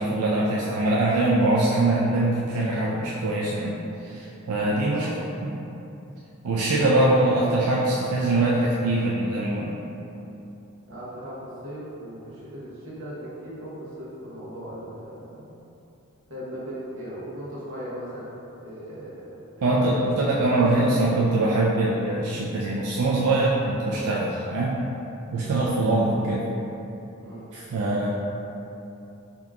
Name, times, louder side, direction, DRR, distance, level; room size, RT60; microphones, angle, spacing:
voice 1, 0.0-5.1 5.4-5.5 6.4-9.7 19.6-24.8 25.3-26.5 27.5-28.1, right 2 dB, 90° right, -5 dB, 0.4 m, -23 dB
voice 2, 4.8-5.1 6.8-7.0 9.0-9.1 10.9-15.6 16.3-20.1 20.5-21.1 25.4-25.7 27.2-27.5, equal, 60° right, -8 dB, 1.0 m, -38 dB
3.4 x 2.9 x 3.6 m, 2.9 s
head